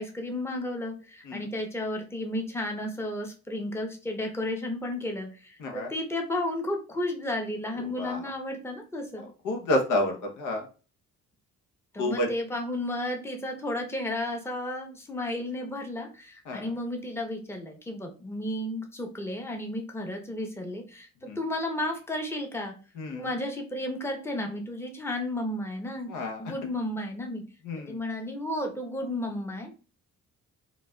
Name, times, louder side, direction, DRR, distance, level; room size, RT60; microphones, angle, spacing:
voice 1, 0.0-9.2 11.9-21.1 21.4-22.8 23.1-27.4 27.9-29.8, left 1 dB, 10° left, 2 dB, 0.7 m, -33 dB
voice 2, 5.6-5.9 7.8-8.2 9.2-10.7 12.0-12.3 16.5-16.7 21.2-21.4 23.0-23.3 26.1-26.4 27.6-28.0, left 1 dB, 85° left, 3 dB, 0.9 m, -30 dB
4.0 x 2.4 x 2.3 m, 0.35 s
cardioid pair, 90°, 30 cm